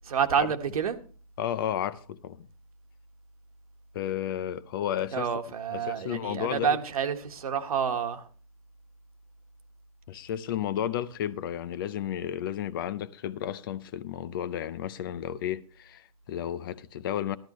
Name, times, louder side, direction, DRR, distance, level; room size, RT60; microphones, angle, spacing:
voice 1, 0.1-0.9 5.1-8.2, right 7 dB, 70° right, 1.5 m, -28 dB
voice 2, 1.4-2.5 3.9-5.3 5.7-6.8 10.1-17.4, left 10 dB, 35° left, 0.6 m, -32 dB
13.5 x 12.5 x 3.1 m
hypercardioid pair, 155°, 19 cm